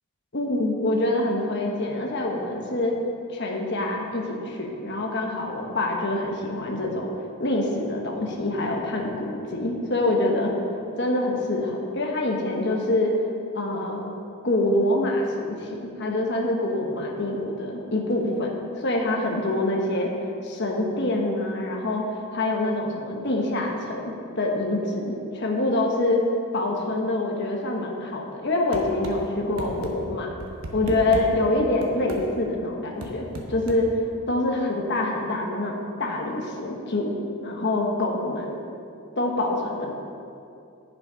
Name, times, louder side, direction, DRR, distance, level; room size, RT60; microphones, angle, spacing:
voice 1, 0.3-3.0 3.3-7.1 7.4-10.5 11.0-13.1 13.5-14.0 14.4-20.1 20.4-22.1 22.3-26.2 26.5-30.3 30.7-33.9 34.3-37.1 37.4-38.6 39.2-39.9, left 2 dB, 50° left, 0 dB, 1.2 m, -25 dB
sound 1, 28.7-29.2 29.6-29.9 30.4-31.3 31.8-32.2 33.0-33.8, right 1 dB, 75° right, 1.1 m, -34 dB
10.5 x 6.1 x 5.1 m, 2.5 s
head